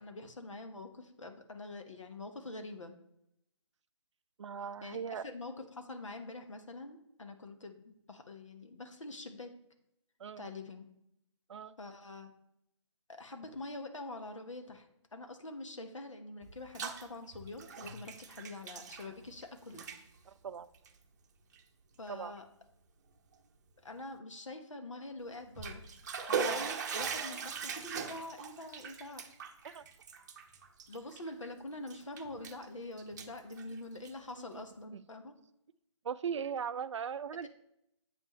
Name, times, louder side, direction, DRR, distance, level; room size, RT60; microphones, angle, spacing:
voice 1, 0.0-2.9 4.8-9.5 10.4-10.9 11.8-12.3 13.1-19.9 22.0-22.4 23.8-25.8 26.3-29.2 30.9-35.3 37.4-37.5, left 2 dB, 75° left, 6 dB, 1.2 m, -45 dB
voice 2, 4.4-5.3 10.2-10.5 11.5-11.8 20.3-20.7 22.1-22.3 26.5-26.6 29.6-29.8 34.4-34.6 36.0-37.5, right 7 dB, 65° right, 13 dB, 0.4 m, -39 dB
Bathtub (filling or washing), 16.4-17.0 17.3-19.4 19.7-20.0 20.7-20.9 21.5-21.6 22.1-22.2 25.3-31.5 31.9-32.7 33.0-34.3, right 6 dB, 35° right, 0.8 m, -40 dB
7.8 x 5.4 x 3.1 m, 0.80 s
figure-of-eight pair, 145°, 16 cm